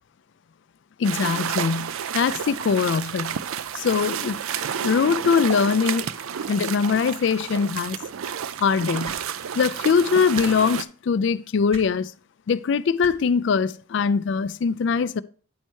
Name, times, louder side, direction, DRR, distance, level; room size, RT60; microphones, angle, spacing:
voice 1, 1.0-3.4 3.7-4.4 4.8-8.0 8.6-9.2 9.6-12.1 12.5-15.2, left 5 dB, 55° left, 0.3 m, -22 dB
sound 1, 1.0-10.8, right 8 dB, 80° right, 0.4 m, -30 dB
sound 2, 9.0-9.2 10.3-10.5 11.7-11.9 13.0-13.1 14.4-14.5, right 2 dB, 30° right, 1.2 m, -37 dB
9.4 x 4.4 x 4.5 m
head